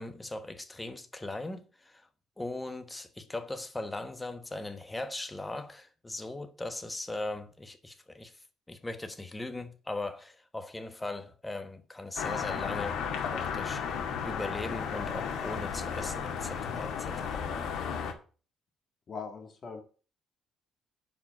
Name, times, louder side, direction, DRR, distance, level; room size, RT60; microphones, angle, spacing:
voice 1, 0.0-2.1 2.4-8.3 8.7-17.5, left 2 dB, 10° left, 1.2 m, -39 dB
sound 1, 12.2-18.1, left 7 dB, 65° left, 2.3 m, -34 dB
voice 2, 19.1-19.8, left 5 dB, 35° left, 2.1 m, -40 dB
10.0 x 5.1 x 7.6 m
cardioid pair, 145°, 0 cm